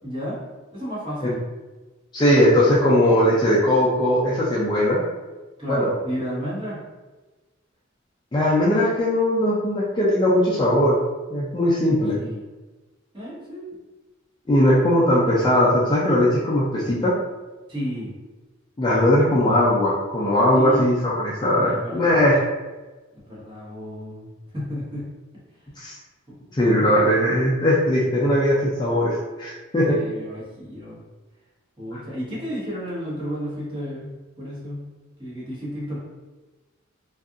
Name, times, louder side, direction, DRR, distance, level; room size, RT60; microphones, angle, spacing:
voice 1, 0.0-0.4 0.7-1.4 5.6-6.8 12.1-12.4 13.1-13.7 17.7-18.1 20.6-21.1 21.6-22.3 23.2-25.1 26.3-26.4 26.6-27.3 29.8-31.0 31.8-34.8 35.2-36.0, equal, 25° right, -8 dB, 1.0 m, -32 dB
voice 2, 2.1-5.0 5.7-5.9 8.3-11.0 11.3-12.2 14.5-17.2 18.8-22.4 25.8-26.0 26.5-30.0, left 1 dB, 20° left, -6 dB, 0.4 m, -19 dB
2.7 x 2.4 x 2.4 m, 1.2 s
head